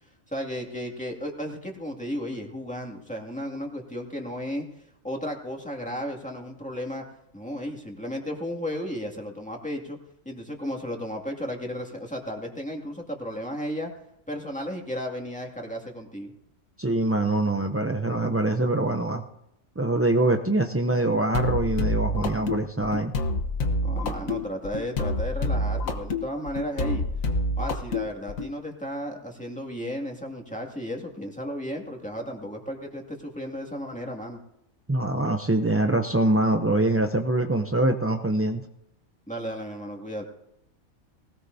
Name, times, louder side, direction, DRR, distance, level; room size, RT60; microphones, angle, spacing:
voice 1, 0.3-4.7 5.0-7.0 7.3-10.0 10.3-13.9 14.3-16.3 23.8-27.0 27.6-34.4 39.3-40.3, equal, 5° left, 0 dB, 2.2 m, -34 dB
voice 2, 16.8-19.2 19.8-23.1 34.9-38.6, right 2 dB, 20° right, 4 dB, 0.3 m, -24 dB
sound 1, 21.3-28.5, left 1 dB, 90° left, 1.6 m, -28 dB
19.5 x 18.5 x 2.7 m, 0.81 s
omnidirectional pair, 1.4 m